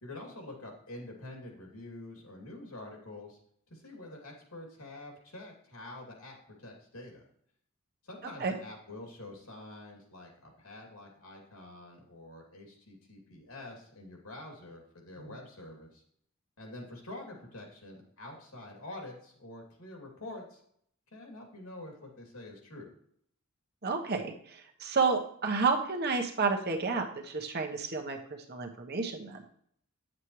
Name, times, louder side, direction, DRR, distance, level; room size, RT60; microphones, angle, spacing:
voice 1, 0.0-3.4 3.7-7.3 8.0-16.0 16.6-20.6 21.1-22.9, left 2 dB, 85° left, 0 dB, 2.8 m, -47 dB
voice 2, 23.8-28.2 28.5-29.4, right 4 dB, 50° right, 3 dB, 1.1 m, -31 dB
9.8 x 7.4 x 3.2 m, 0.65 s
head